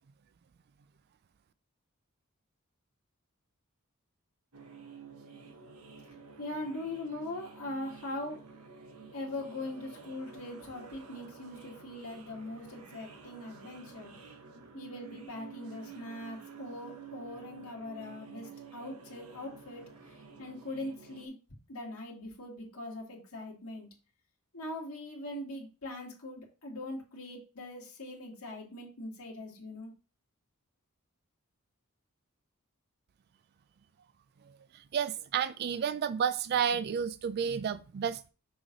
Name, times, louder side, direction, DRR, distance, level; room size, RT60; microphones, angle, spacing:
sound 1, 4.5-21.3, right 5 dB, 75° right, 1.0 m, -51 dB
voice 1, 6.4-8.4 9.1-14.2 14.7-19.9 20.4-21.3 21.7-23.9 24.5-29.9, left 1 dB, 70° left, 2.0 m, -41 dB
voice 2, 34.9-38.3, right 7 dB, 45° right, 0.3 m, -31 dB
6.1 x 3.2 x 5.1 m
head